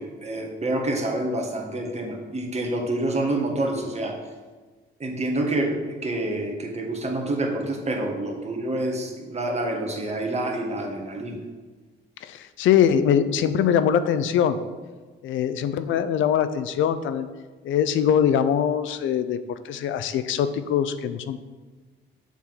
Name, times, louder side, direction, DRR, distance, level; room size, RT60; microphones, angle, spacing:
voice 1, 0.0-4.2 5.0-11.4, right 1 dB, 35° right, 1 dB, 1.6 m, -27 dB
voice 2, 12.2-14.6 15.2-17.3 17.6-21.4, left 8 dB, 80° left, 12 dB, 0.5 m, -22 dB
7.1 x 3.7 x 6.0 m, 1.3 s
cardioid pair, 90°, 20 cm